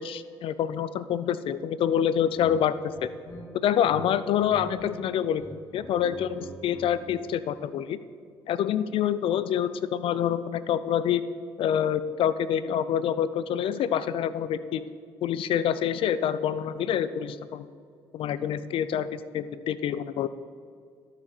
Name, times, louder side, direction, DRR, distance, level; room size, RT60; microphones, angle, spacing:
voice 1, 0.0-3.1 3.6-8.0 8.5-11.2 11.6-14.8 15.2-17.7 18.1-20.3, left 9 dB, 70° left, 15 dB, 0.6 m, -27 dB
sound 1, 2.3-2.5 2.9-4.0 4.3-4.9 5.2-7.1, equal, 35° left, 2.9 m, -44 dB
12.0 x 7.4 x 6.7 m, 2.1 s
cardioid pair, 80°, 10 cm